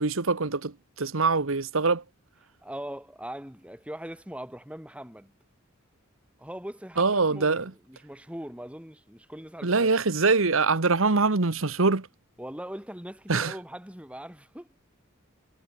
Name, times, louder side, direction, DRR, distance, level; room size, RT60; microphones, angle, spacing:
voice 1, 0.0-2.0 7.0-7.7 9.6-12.1 13.3-13.5, right 4 dB, 75° right, 1.2 m, -24 dB
voice 2, 2.6-5.3 6.4-7.6 7.9-9.9 12.4-14.7, right 1 dB, 5° right, 2.8 m, -40 dB
head